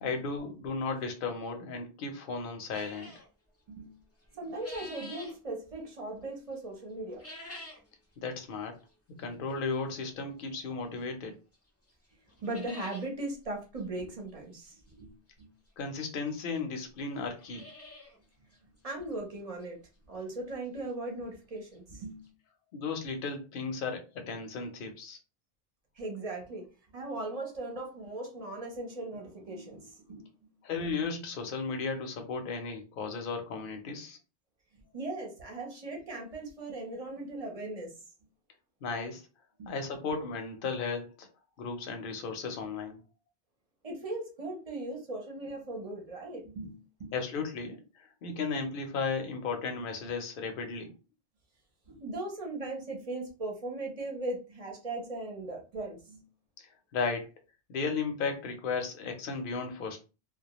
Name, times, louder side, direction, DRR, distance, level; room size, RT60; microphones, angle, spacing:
voice 1, 0.0-3.1 8.2-8.8 9.2-11.4 15.8-17.6 22.7-25.2 30.6-34.2 38.8-39.2 39.7-41.3 41.6-43.0 47.1-50.9 56.6-57.3 57.7-60.0, left 4 dB, 55° left, 0.7 m, -35 dB
sound 1, 2.7-3.3 4.2-5.4 7.1-7.9 8.3-8.4 9.2-9.3 11.0-11.1 11.5-11.6 11.9-12.0 12.3-13.1 13.4-13.5 13.7-13.8 15.4-15.5 16.3-16.4 16.6-16.7 17.2-18.2 18.5-18.6 19.1-19.2 19.6-19.7 21.4-21.5 21.7-21.8 22.2-22.3, left 1 dB, 25° left, 0.3 m, -47 dB
voice 2, 3.7-4.0 4.3-7.2 12.4-15.5 18.8-19.8 20.1-22.3 26.0-26.7 26.9-30.3 34.9-37.9 39.6-39.8 43.8-47.2 49.8-49.9 51.9-56.3, right 2 dB, 40° right, 0.7 m, -38 dB
2.2 x 2.2 x 2.9 m
omnidirectional pair, 1.1 m